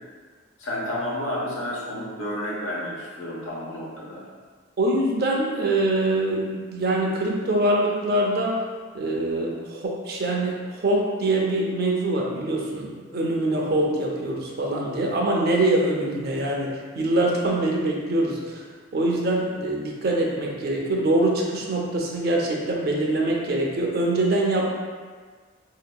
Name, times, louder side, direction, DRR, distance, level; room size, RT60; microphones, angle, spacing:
voice 1, 0.6-4.2, left 1 dB, 90° left, -5 dB, 0.9 m, -31 dB
voice 2, 4.8-8.6 8.9-18.6 18.9-24.6, right 1 dB, 50° right, -2 dB, 0.6 m, -24 dB
4.3 x 2.8 x 2.2 m, 1.5 s
head